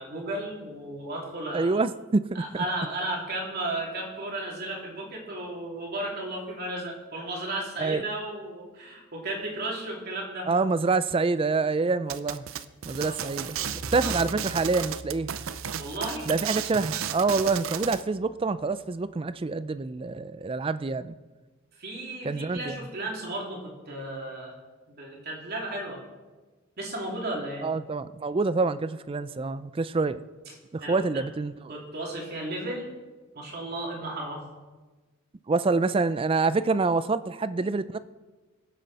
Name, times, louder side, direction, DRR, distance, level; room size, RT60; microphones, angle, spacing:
voice 1, 0.0-1.7 2.3-10.5 13.0-13.4 14.0-14.1 15.8-16.3 21.8-24.5 24.9-26.0 26.8-27.7 30.8-30.9 31.7-32.9 33.3-34.4, right 1 dB, 50° right, -2 dB, 2.9 m, -34 dB
voice 2, 1.5-2.6 7.8-8.0 10.5-12.4 12.8-13.6 13.9-15.3 16.3-21.2 22.2-22.8 27.6-30.2 30.7-31.5 35.5-38.0, right 3 dB, 25° right, 14 dB, 0.4 m, -26 dB
sound 1, 12.1-18.0, right 9 dB, 75° right, 0.6 m, -34 dB
sound 2, 13.6-19.0, equal, 5° left, 3.2 m, -44 dB
22.0 x 7.6 x 4.2 m, 1.3 s
head